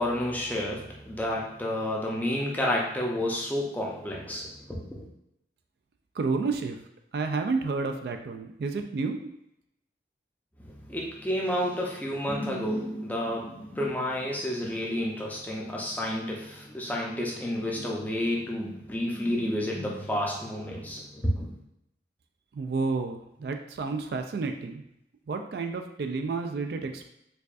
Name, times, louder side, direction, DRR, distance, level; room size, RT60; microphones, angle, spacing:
voice 1, 0.0-5.1 10.6-21.5, left 1 dB, 10° left, -3 dB, 0.5 m, -30 dB
voice 2, 6.2-6.8 7.1-9.3 22.5-24.8 25.3-27.1, right 4 dB, 60° right, 5 dB, 0.3 m, -30 dB
4.6 x 2.5 x 2.4 m, 0.80 s
head